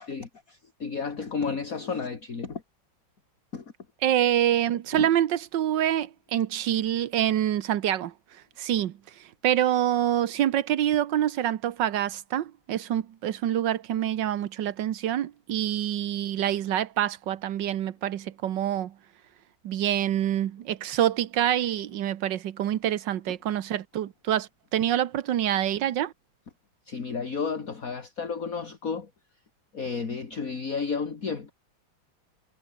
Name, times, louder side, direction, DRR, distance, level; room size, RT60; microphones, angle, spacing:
voice 1, 0.0-2.6 3.5-3.6 4.9-5.1 26.9-29.1 29.7-31.5, left 5 dB, 45° left, 2.7 m, -32 dB
voice 2, 4.0-8.1 8.6-8.9 9.4-18.9 19.6-26.1, right 11 dB, 65° right, 1.5 m, -26 dB
omnidirectional pair, 2.2 m